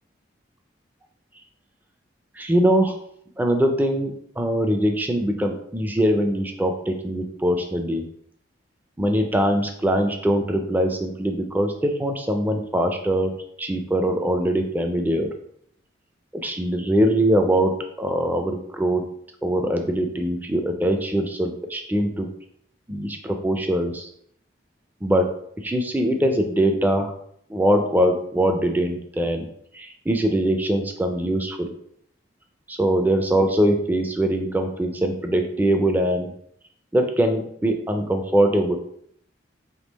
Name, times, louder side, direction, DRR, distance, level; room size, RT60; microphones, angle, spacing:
voice 1, 2.4-3.0 3.4-8.0 9.0-13.3 13.6-15.3 16.3-17.7 18.0-19.0 19.4-22.3 22.9-24.1 25.0-25.3 25.6-27.1 27.5-29.5 29.7-31.7 32.7-36.3 36.9-38.8, right 1 dB, 10° right, 4 dB, 0.4 m, -22 dB
3.6 x 2.9 x 4.0 m, 0.69 s
head